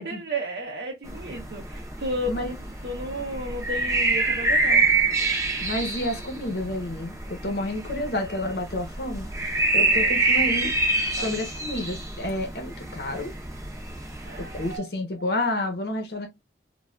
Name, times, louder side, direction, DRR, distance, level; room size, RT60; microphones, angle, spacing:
voice 1, 0.0-2.6 2.8-5.1 9.8-10.2 11.2-11.5 14.2-14.9, right 1 dB, 65° right, 0.7 m, -33 dB
sound 1, 1.1-14.8, right 3 dB, 15° right, 0.7 m, -26 dB
voice 2, 5.6-9.3 9.7-10.7 11.1-13.3 14.4-16.3, left 1 dB, 65° left, 0.8 m, -30 dB
3.2 x 2.3 x 2.3 m
head